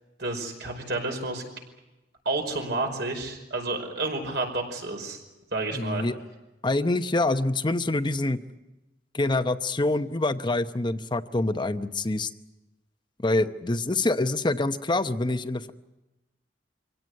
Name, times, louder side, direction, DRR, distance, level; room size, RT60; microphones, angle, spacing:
voice 1, 0.2-1.4 2.2-5.2 5.5-6.1, right 2 dB, 65° right, 3 dB, 5.2 m, -30 dB
voice 2, 5.7-6.1 6.6-8.4 9.1-12.3 13.2-15.7, left 2 dB, 25° left, 10 dB, 0.9 m, -26 dB
25.5 x 17.0 x 9.6 m, 1.0 s
head